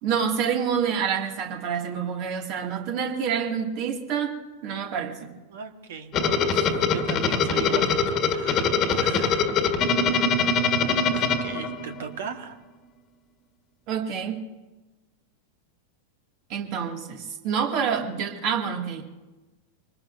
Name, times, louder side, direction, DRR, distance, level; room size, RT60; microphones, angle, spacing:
voice 1, 0.0-5.3 13.9-14.5 16.5-19.0, right 7 dB, 40° right, 2 dB, 2.3 m, -27 dB
voice 2, 5.4-9.6 10.4-10.6 11.1-12.6, right 6 dB, 55° right, 6 dB, 1.7 m, -38 dB
sound 1, 6.1-12.2, left 5 dB, 30° left, 1.6 m, -23 dB
25.5 x 20.0 x 2.7 m, 1.2 s
figure-of-eight pair, 90°, 0 cm